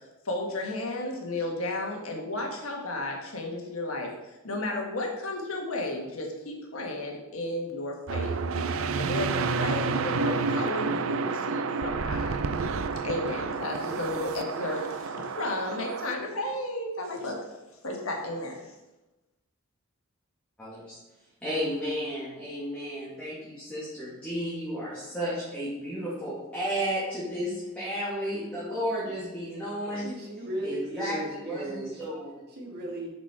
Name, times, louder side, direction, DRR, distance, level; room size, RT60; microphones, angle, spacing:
voice 1, 0.2-4.1 4.4-8.3 9.0-12.4 13.0-17.4 17.8-18.7, left 2 dB, 75° left, 1 dB, 1.6 m, -33 dB
sound 1, 8.1-16.1, right 4 dB, 70° right, 0.5 m, -30 dB
voice 2, 20.6-21.0 21.4-30.1 30.6-32.4, equal, 5° left, -10 dB, 2.3 m, -33 dB
voice 3, 30.0-32.0 32.5-33.1, right 1 dB, 50° right, -1 dB, 1.9 m, -36 dB
6.1 x 6.1 x 4.6 m, 1.0 s
head